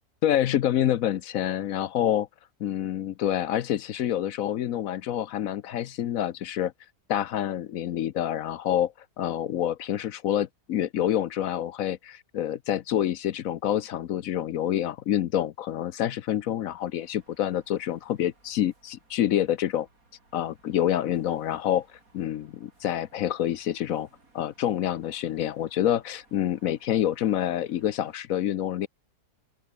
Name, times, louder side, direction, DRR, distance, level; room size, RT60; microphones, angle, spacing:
voice 1, 0.2-2.3 2.6-6.7 7.1-19.9 20.3-21.9 22.1-24.1 24.3-28.9, left 11 dB, 65° left, 1.0 m, -27 dB
sound 1, 16.3-28.2, right 3 dB, 55° right, 4.8 m, -63 dB
open air
omnidirectional pair, 1.8 m